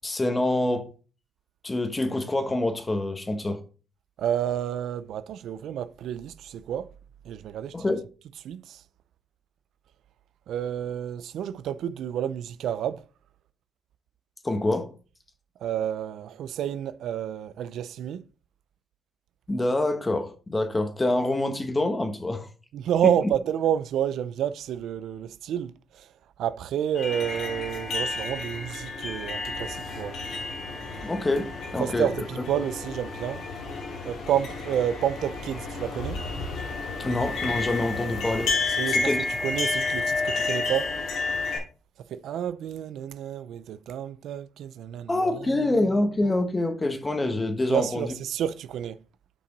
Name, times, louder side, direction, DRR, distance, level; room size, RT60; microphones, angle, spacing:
voice 1, 0.0-0.9 1.6-3.6 7.7-8.0 14.4-14.9 19.5-22.5 23.0-23.1 31.0-32.1 37.0-38.5 38.9-39.2 45.1-48.1, left 2 dB, 20° left, 1.3 m, -26 dB
voice 2, 4.2-6.9 7.3-7.8 8.4-8.8 10.5-13.0 15.6-18.2 22.7-25.7 26.4-30.1 31.8-33.4 34.0-36.2 38.8-39.0 39.4-40.9 42.1-45.2 47.7-49.0, right 10 dB, 75° right, 0.5 m, -29 dB
sound 1, 26.9-41.6, left 3 dB, 75° left, 2.8 m, -31 dB
7.2 x 5.9 x 4.0 m
cardioid pair, 90°, 0 cm